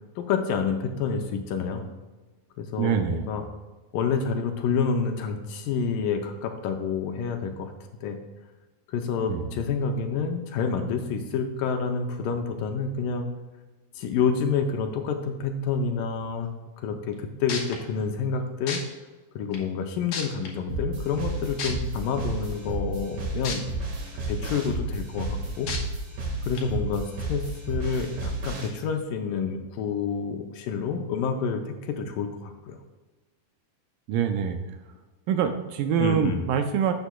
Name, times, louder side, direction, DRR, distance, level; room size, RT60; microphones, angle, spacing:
voice 1, 0.2-1.9 2.6-3.4 3.9-7.7 8.0-8.2 8.9-13.3 14.0-16.5 16.8-18.8 19.4-23.6 24.3-25.7 26.5-32.8 36.0-36.5, left 5 dB, 80° left, 5 dB, 2.1 m, -28 dB
voice 2, 2.8-3.3 9.3-9.6 34.1-34.6 35.3-36.9, right 8 dB, 80° right, 7 dB, 2.1 m, -25 dB
sound 1, 17.1-17.2 17.5-17.8 18.7-18.8 19.5-19.6 20.1-20.5 21.6-21.7 23.4-23.6 24.1-24.2 25.7-25.8 26.5-26.6, left 5 dB, 60° left, 1.8 m, -31 dB
sound 2, 20.7-28.7, right 2 dB, 55° right, 2.5 m, -32 dB
11.5 x 8.0 x 2.2 m, 1.2 s
omnidirectional pair, 4.2 m